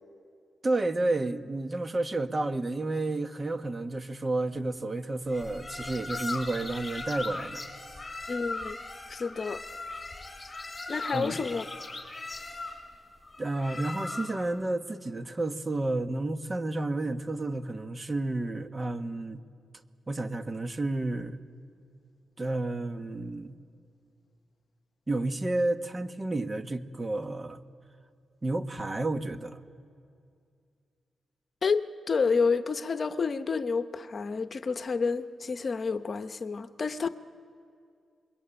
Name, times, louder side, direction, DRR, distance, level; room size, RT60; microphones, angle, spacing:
voice 1, 0.6-7.6 11.1-11.4 13.4-19.4 20.1-21.4 22.4-23.5 25.1-27.6 28.4-29.6, right 2 dB, 35° right, 1.4 m, -31 dB
sound 1, 5.3-14.5, left 2 dB, 20° left, 5.3 m, -39 dB
voice 2, 8.3-8.8 9.1-9.6 10.9-11.6 31.6-37.1, left 5 dB, 50° left, 0.9 m, -29 dB
27.5 x 22.0 x 9.0 m
cardioid pair, 55°, 0 cm